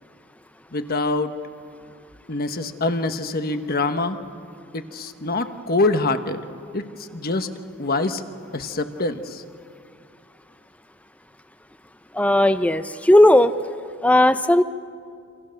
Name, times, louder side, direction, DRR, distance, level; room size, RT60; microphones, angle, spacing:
voice 1, 0.7-1.3 2.3-4.2 4.7-6.4 6.7-6.8 7.1-7.5 7.8-8.2 8.5-9.4, left 2 dB, 45° left, 8 dB, 1.2 m, -24 dB
voice 2, 12.1-13.5 14.0-14.6, left 1 dB, 5° left, 11 dB, 0.6 m, -16 dB
28.0 x 27.0 x 6.6 m, 2.3 s
head